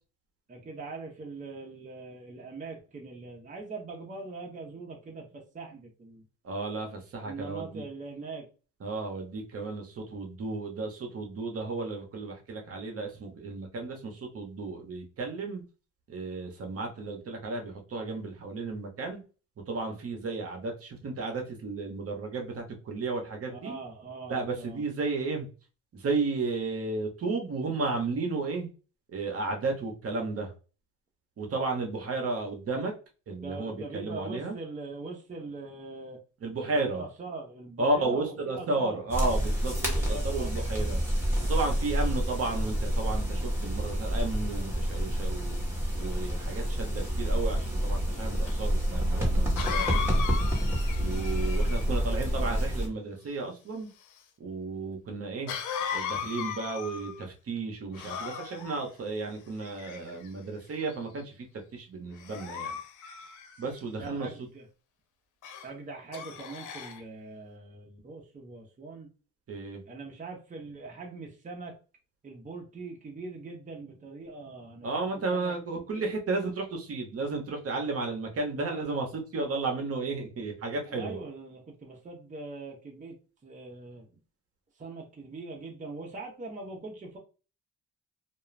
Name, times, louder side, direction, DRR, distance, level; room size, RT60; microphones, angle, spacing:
voice 1, 0.5-6.3 7.2-8.5 23.5-24.8 33.4-36.2 36.8-39.0 39.9-40.6 51.0-51.6 63.9-64.7 65.6-69.1 69.9-71.8 72.2-76.0 78.6-78.9 80.9-84.1 84.8-87.2, right 3 dB, 25° right, 0 dB, 0.8 m, -42 dB
voice 2, 6.4-7.8 8.8-15.6 16.1-19.2 19.7-23.8 24.3-25.5 25.9-28.7 29.1-30.5 31.4-32.9 33.3-34.6 36.4-37.0 37.8-41.0 41.4-45.6 46.0-50.0 51.0-53.9 54.4-55.5 55.9-61.4 61.7-62.8 63.6-64.3 69.5-69.8 74.8-81.2, right 3 dB, 50° right, 2 dB, 0.9 m, -33 dB
sound 1, 39.1-52.9, equal, 10° right, 1.3 m, -28 dB
Cough, 48.5-48.6 49.6-51.9 55.5-57.2 57.9-58.8 59.6-60.3 60.9-61.2 62.2-63.8 65.4-65.7 66.1-67.0, left 7 dB, 80° left, 0.6 m, -36 dB
2.4 x 2.2 x 3.1 m, 0.34 s
cardioid pair, 90°, 30 cm